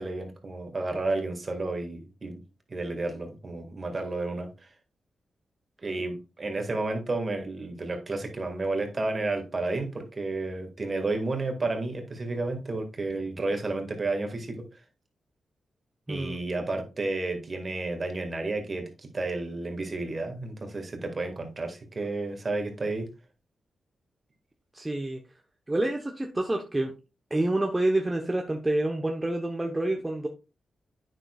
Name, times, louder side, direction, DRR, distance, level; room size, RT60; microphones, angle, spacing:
voice 1, 0.0-2.4 2.7-4.5 5.8-14.7 16.1-23.1, right 2 dB, 45° right, 5 dB, 2.0 m, -31 dB
voice 2, 16.1-16.4 24.7-25.2 25.7-26.9 27.3-30.3, right 1 dB, 25° right, 2 dB, 1.1 m, -28 dB
8.8 x 6.4 x 2.4 m, 0.29 s
supercardioid pair, 45°, 0 cm